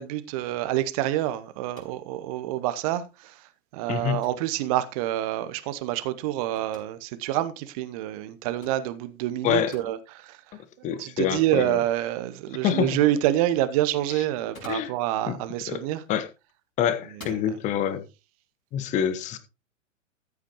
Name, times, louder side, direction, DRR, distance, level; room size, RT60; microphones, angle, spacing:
voice 1, 0.0-16.0 17.1-17.6, right 14 dB, 25° right, 0.8 m, -27 dB
sound 1, 1.7-2.1 4.2-4.5 6.6-6.9 8.6-8.8 9.7-9.9 10.9-11.0 14.3-15.0 16.2-16.5 17.1-17.5, left 1 dB, 80° left, 5.5 m, -46 dB
voice 2, 9.4-9.7 10.8-11.8 12.6-13.0 14.7-14.9 15.3-15.4 15.7-15.8 16.1-16.2 16.8-18.0 18.7-19.4, left 9 dB, 20° left, 1.0 m, -26 dB
14.0 x 8.3 x 3.0 m
figure-of-eight pair, 115°, 40 cm